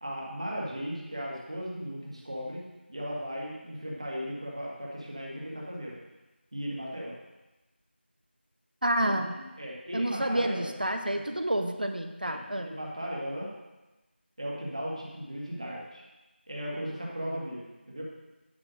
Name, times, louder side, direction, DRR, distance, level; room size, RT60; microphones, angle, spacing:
voice 1, 0.0-6.0 6.5-7.2 9.0-10.7 11.0-11.3 12.2-13.5 14.4-16.1 16.5-18.0, equal, 30° right, -3 dB, 2.0 m, -37 dB
voice 2, 8.8-9.4 9.9-12.7, right 1 dB, 50° right, 6 dB, 1.0 m, -29 dB
10.5 x 5.7 x 6.3 m, 1.1 s
figure-of-eight pair, 175°, 6 cm